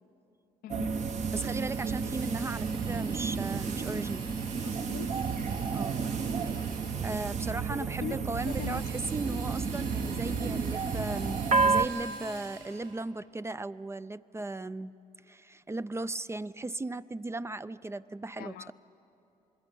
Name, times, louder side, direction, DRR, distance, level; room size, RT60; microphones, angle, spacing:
voice 1, 0.6-1.1 4.6-5.7 7.7-8.9 18.4-18.7, left 10 dB, 75° left, 10 dB, 0.7 m, -42 dB
sound 1, 0.7-11.9, right 5 dB, 50° right, 1.0 m, -31 dB
voice 2, 1.3-4.2 5.7-6.0 6.6-6.7 7.0-14.9 15.3-18.7, right 2 dB, 15° right, 14 dB, 0.4 m, -37 dB
Drill, 1.3-7.4 8.3-13.0, right 4 dB, 65° right, 5.0 m, -48 dB
26.5 x 21.0 x 5.4 m, 2.9 s
supercardioid pair, 75°, 15 cm